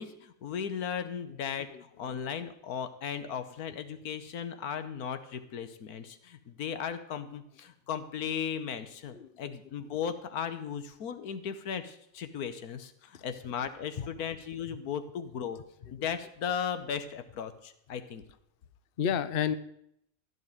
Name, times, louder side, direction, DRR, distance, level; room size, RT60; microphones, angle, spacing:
voice 1, 0.0-15.6 15.9-18.2, left 7 dB, 90° left, 10 dB, 1.5 m, -36 dB
voice 2, 1.4-1.8 9.1-9.5 13.1-13.2 14.0-14.1 19.0-19.6, left 8 dB, 50° left, 13 dB, 0.8 m, -32 dB
15.5 x 5.4 x 9.2 m, 0.74 s
omnidirectional pair, 1.5 m